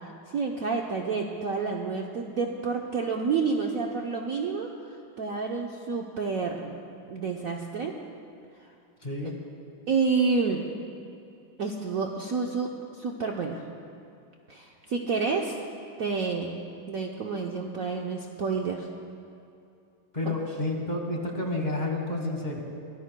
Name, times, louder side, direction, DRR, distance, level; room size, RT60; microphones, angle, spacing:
voice 1, 0.3-4.7 5.2-6.8 7.1-7.9 9.9-10.7 11.6-12.7 13.0-13.6 14.5-15.6 16.0-16.6 16.9-18.9 20.2-20.3, right 4 dB, 55° right, 0 dB, 1.0 m, -29 dB
voice 2, 9.0-9.3 20.1-22.6, left 2 dB, 25° left, 0 dB, 1.3 m, -30 dB
24.0 x 18.5 x 2.2 m, 2.6 s
omnidirectional pair, 2.2 m